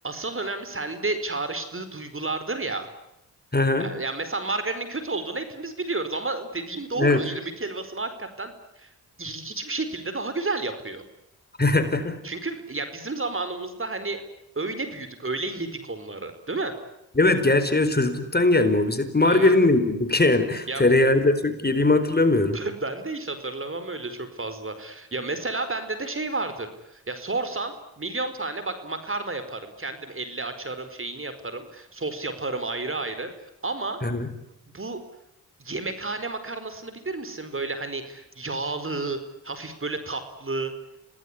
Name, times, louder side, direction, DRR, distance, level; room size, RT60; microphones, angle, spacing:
voice 1, 0.0-2.9 3.8-8.9 9.2-11.0 12.2-14.2 14.5-16.7 19.2-19.5 20.7-20.9 22.5-33.3 33.6-34.0 34.7-35.0 35.6-39.2 39.4-40.7, right 3 dB, 35° right, 10 dB, 4.8 m, -31 dB
voice 2, 3.5-3.9 7.0-7.2 11.6-12.2 17.2-22.6 34.0-34.3, left 2 dB, 25° left, 10 dB, 4.4 m, -20 dB
27.5 x 18.5 x 9.9 m, 0.84 s
supercardioid pair, 50°, 38 cm